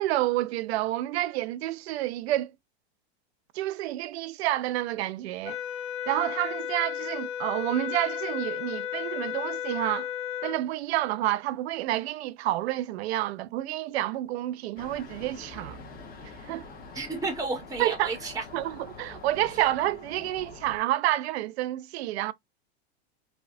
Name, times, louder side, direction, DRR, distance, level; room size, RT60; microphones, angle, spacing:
voice 1, 0.0-2.5 3.5-5.6 6.1-10.1 10.4-15.8 16.5-16.7 17.8-18.1 18.5-22.3, right 14 dB, 75° right, 0.5 m, -29 dB
sound 1, 5.4-10.6, left 10 dB, 60° left, 1.3 m, -34 dB
sound 2, 14.8-20.8, left 4 dB, 30° left, 1.0 m, -45 dB
voice 2, 16.9-18.4, right 3 dB, 10° right, 1.1 m, -32 dB
4.1 x 2.3 x 2.5 m
supercardioid pair, 125°, 32 cm